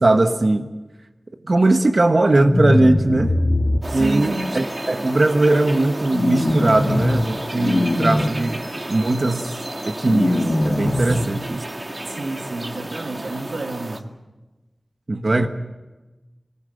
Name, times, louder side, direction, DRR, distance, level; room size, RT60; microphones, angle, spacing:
voice 1, 0.0-0.7 1.4-3.3 3.9-9.6 9.9-11.6 12.8-12.9 15.1-15.5, right 2 dB, 55° right, 6 dB, 1.2 m, -19 dB
sound 1, 2.4-3.8 6.1-7.2 7.6-8.3 10.0-11.2, left 1 dB, 45° left, 2.4 m, -20 dB
sound 2, 3.8-14.0, right 1 dB, 35° right, 2.1 m, -32 dB
voice 2, 3.9-4.5 12.0-14.1 15.1-15.5, right 2 dB, 90° right, 4 dB, 1.8 m, -30 dB
23.5 x 19.5 x 7.9 m, 1.2 s
wide cardioid pair, 65°, 0 cm